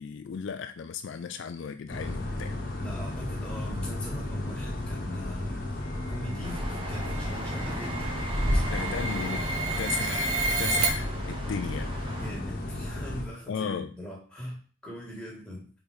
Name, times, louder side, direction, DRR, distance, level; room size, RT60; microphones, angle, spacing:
voice 1, 0.0-2.5 8.7-9.5 9.8-11.9 13.1-13.2 13.5-13.9, left 6 dB, 55° left, 0.3 m, -35 dB
sound 1, 1.9-13.2, left 1 dB, 40° left, 1.1 m, -34 dB
voice 2, 2.7-5.8 6.1-8.9 12.1-15.7, equal, 5° left, 1.9 m, -41 dB
sound 2, 6.1-10.9, right 3 dB, 85° right, 1.3 m, -32 dB
sound 3, 6.4-12.3, equal, 25° right, 0.9 m, -33 dB
4.5 x 4.4 x 5.1 m
head